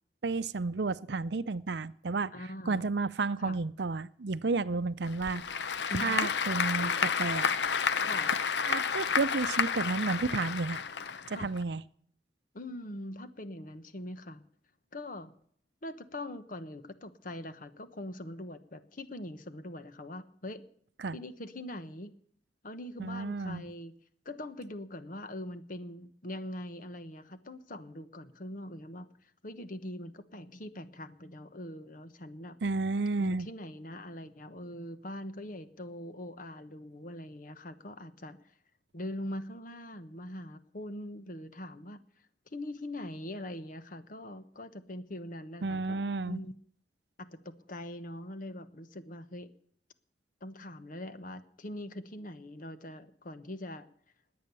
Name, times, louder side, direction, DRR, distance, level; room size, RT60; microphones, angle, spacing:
voice 1, 0.2-2.3 2.7-5.4 6.0-7.6 8.6-10.8 11.3-11.8 21.0-21.2 23.0-23.6 32.6-33.5 45.6-46.4, right 3 dB, 70° right, 15 dB, 0.6 m, -32 dB
voice 2, 2.3-2.9 3.4-3.6 5.9-6.3 6.8-7.1 8.0-8.3 11.3-11.5 12.5-14.4 14.9-15.3 15.8-20.6 21.1-22.1 22.6-23.9 24.2-32.5 33.2-38.5 38.9-42.0 42.5-46.5 47.2-49.5 50.4-53.9, left 1 dB, 50° left, 11 dB, 1.2 m, -42 dB
Applause / Crowd, 5.0-11.6, left 6 dB, 75° left, 0.8 m, -31 dB
20.5 x 8.6 x 7.0 m, 0.63 s
head